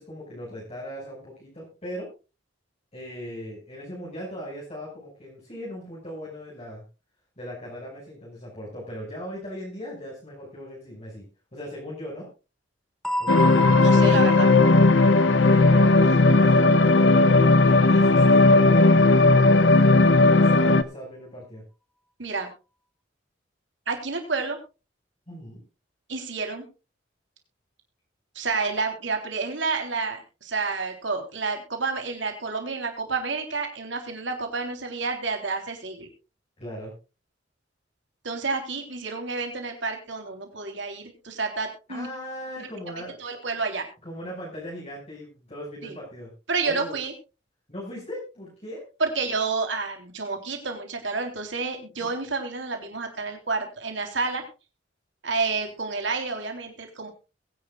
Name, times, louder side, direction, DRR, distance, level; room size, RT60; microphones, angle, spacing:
voice 1, 0.0-2.1 2.9-6.8 7.4-11.3 11.5-12.3 13.2-14.3 15.4-21.6 25.3-25.6 36.6-36.9 41.9-43.2 44.0-46.3 46.6-47.0 47.7-48.8, equal, 35° left, -4 dB, 6.2 m, -38 dB
sound 1, 13.0-17.7, equal, 5° left, 0.7 m, -31 dB
sound 2, 13.3-20.8, left 3 dB, 65° left, 0.8 m, -16 dB
voice 2, 13.8-14.5 22.2-22.5 23.9-24.6 26.1-26.6 28.4-36.1 38.2-42.1 42.9-43.9 45.8-46.0 46.5-47.1 49.0-54.4 55.2-57.1, right 4 dB, 75° right, 4 dB, 3.6 m, -29 dB
22.0 x 10.5 x 2.4 m, 0.31 s
head